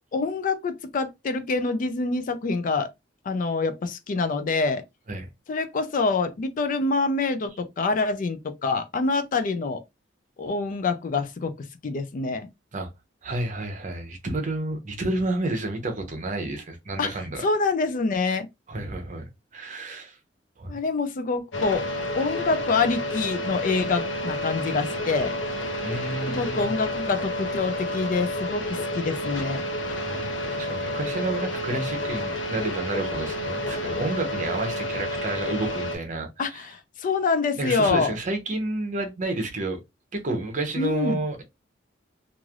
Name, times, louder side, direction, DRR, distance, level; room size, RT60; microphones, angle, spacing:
voice 1, 0.1-2.9 3.3-4.8 5.5-9.8 10.4-11.5 11.8-12.5 17.0-17.1 17.4-18.5 20.7-21.8 22.1-25.3 26.4-29.6 36.4-38.1 40.8-41.2, left 4 dB, 45° left, 0.4 m, -26 dB
voice 2, 13.2-17.4 18.7-20.1 20.6-20.8 25.8-26.7 30.0-36.6 37.6-39.8 40.1-41.4, right 2 dB, 45° right, 0.8 m, -30 dB
sound 1, 21.5-36.0, left 1 dB, 75° left, 0.7 m, -30 dB
3.2 x 2.5 x 2.3 m
head